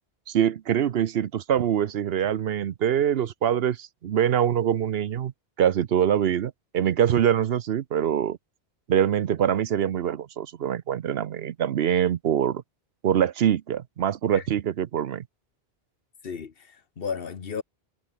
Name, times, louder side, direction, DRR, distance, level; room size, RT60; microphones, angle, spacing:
voice 1, 0.3-5.3 5.6-8.4 8.9-12.6 13.0-15.2, right 9 dB, 70° right, 0.9 m, -24 dB
voice 2, 16.2-17.6, left 6 dB, 60° left, 1.3 m, -34 dB
omnidirectional pair, 1.1 m